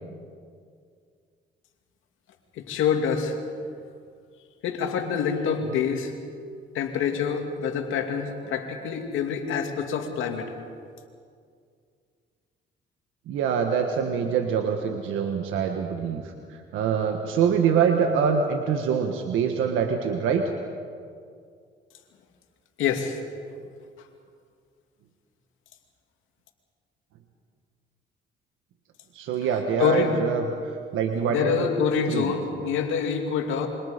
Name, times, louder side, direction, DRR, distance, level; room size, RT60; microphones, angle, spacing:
voice 1, 2.6-3.4 4.6-6.1 6.7-10.5 22.8-23.2 29.8-30.1 31.3-33.7, left 7 dB, 90° left, 4 dB, 2.5 m, -26 dB
voice 2, 13.3-20.5 29.1-30.4 30.9-31.7 32.1-32.3, right 6 dB, 90° right, 4 dB, 1.5 m, -25 dB
26.5 x 24.5 x 5.2 m, 2.2 s
cardioid pair, 90°, 20 cm